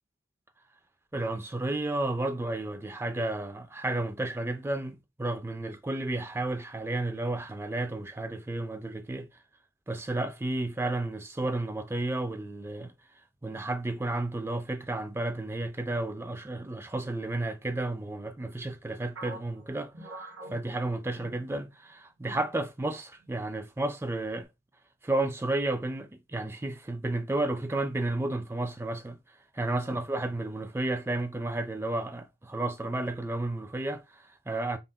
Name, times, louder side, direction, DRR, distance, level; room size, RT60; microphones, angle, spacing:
voice 1, 1.1-9.3 9.9-12.9 13.4-19.9 20.2-24.5 25.0-29.2 29.5-34.8, right 2 dB, 10° right, 0.3 m, -32 dB
sound 1, 19.2-22.0 22.3-22.5 23.2-23.6, right 2 dB, 65° right, 1.7 m, -46 dB
5.4 x 2.5 x 2.2 m
head